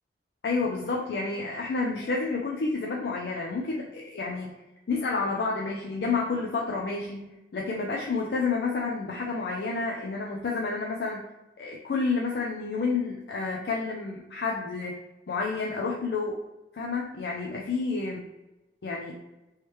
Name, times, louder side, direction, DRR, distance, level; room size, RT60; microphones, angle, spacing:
voice 1, 0.4-4.6 4.9-11.2 11.6-15.0 15.3-16.4 16.7-18.2 18.8-19.2, left 4 dB, 65° left, 0 dB, 0.4 m, -30 dB
3.2 x 3.1 x 3.0 m, 1.0 s
head